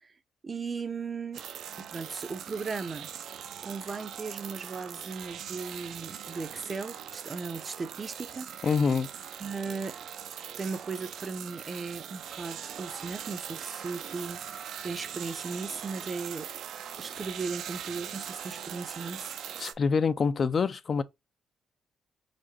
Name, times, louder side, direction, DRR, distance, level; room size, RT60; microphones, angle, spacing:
voice 1, 0.4-1.4 1.8-3.1 3.6-8.5 9.4-10.0 10.6-16.5 17.0-19.4, right 4 dB, 35° right, 0.6 m, -37 dB
sound 1, 1.3-19.7, right 9 dB, 70° right, 0.6 m, -41 dB
voice 2, 8.6-9.1 19.6-21.0, left 5 dB, 45° left, 0.5 m, -26 dB
5.1 x 2.1 x 4.1 m
cardioid pair, 90°, 0 cm